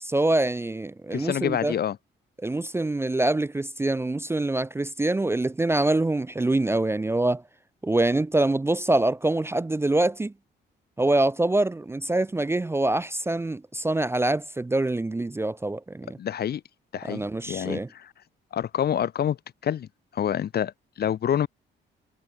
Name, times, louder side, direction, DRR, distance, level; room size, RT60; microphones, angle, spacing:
voice 1, 0.0-1.7 2.4-7.4 7.8-10.3 11.0-16.2 17.1-17.9, right 2 dB, 10° right, 0.5 m, -25 dB
voice 2, 1.1-2.0 16.2-16.6 16.9-18.1 18.5-19.4 19.6-19.9 20.1-20.7 21.0-21.5, left 9 dB, 55° left, 0.9 m, -27 dB
cardioid pair, 90°, 20 cm